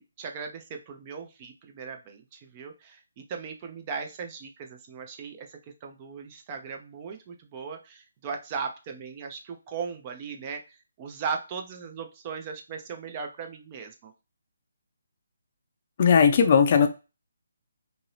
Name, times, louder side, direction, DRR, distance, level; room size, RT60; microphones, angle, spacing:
voice 1, 0.2-5.5 5.8-10.6 11.0-14.1, right 5 dB, 25° right, 4 dB, 0.4 m, -37 dB
voice 2, 16.0-16.9, left 6 dB, 40° left, 7 dB, 0.4 m, -18 dB
2.8 x 2.6 x 3.1 m, 0.29 s
hypercardioid pair, 160°, 0 cm